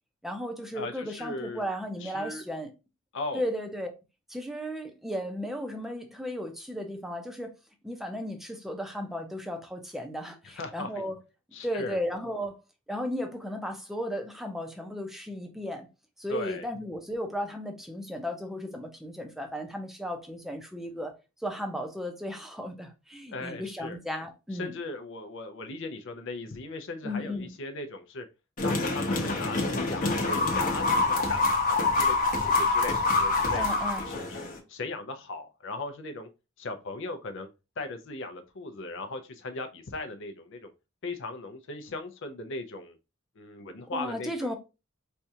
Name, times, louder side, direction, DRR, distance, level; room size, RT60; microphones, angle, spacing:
voice 1, 0.2-2.7 3.3-3.9 4.3-7.5 7.8-11.2 11.6-12.6 12.9-15.9 16.2-21.2 21.4-24.7 27.0-27.5 33.5-34.0 43.9-44.6, equal, ahead, 0.6 m, -35 dB
voice 2, 0.7-1.6 2.0-2.4 3.1-3.5 10.4-10.9 11.5-12.0 16.3-16.7 23.3-24.0 24.5-28.2 28.6-33.6 34.0-36.3 36.6-37.5 37.8-40.7 41.0-43.0 43.4-44.6, left 3 dB, 65° left, 0.5 m, -38 dB
sound 1, 28.6-34.6, left 3 dB, 40° left, 0.9 m, -26 dB
4.3 x 2.4 x 2.7 m
head